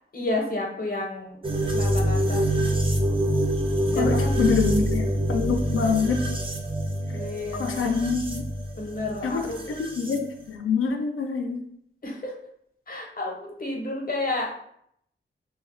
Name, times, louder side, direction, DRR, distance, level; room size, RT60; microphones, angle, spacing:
voice 1, 0.1-1.4 1.7-2.7 3.9-4.5 7.1-7.9 8.8-9.8 12.0-12.3 12.9-14.6, left 2 dB, 45° left, 0 dB, 0.7 m, -31 dB
sound 1, 1.4-10.2, right 1 dB, 25° right, 0.4 m, -26 dB
voice 2, 3.9-6.2 7.6-8.5 9.2-9.5 9.8-11.6, left 5 dB, 85° left, 4 dB, 0.4 m, -25 dB
2.2 x 2.0 x 3.7 m, 0.70 s
wide cardioid pair, 80°, 21 cm